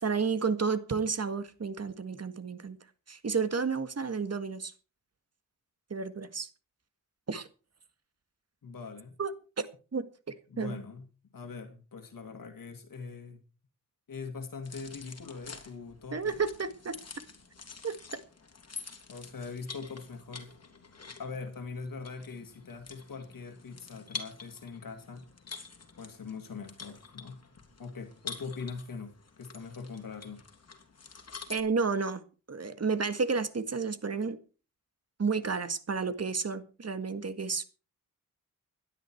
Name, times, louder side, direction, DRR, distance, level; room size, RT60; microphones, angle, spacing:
voice 1, 0.0-2.8 3.1-4.7 5.9-6.5 7.3-7.5 9.2-9.7 9.9-10.8 16.1-17.0 17.8-18.0 31.5-32.2 32.5-34.4 35.2-37.6, right 5 dB, 50° right, 1.8 m, -31 dB
voice 2, 8.6-9.2 10.5-11.1 11.3-13.4 14.1-16.4 19.1-20.5 21.2-25.2 26.0-27.4 27.8-29.1 29.4-30.4, left 4 dB, 75° left, 2.2 m, -42 dB
sound 1, 14.6-31.6, left 5 dB, 50° left, 3.3 m, -47 dB
17.0 x 12.0 x 4.6 m
wide cardioid pair, 85°, 34 cm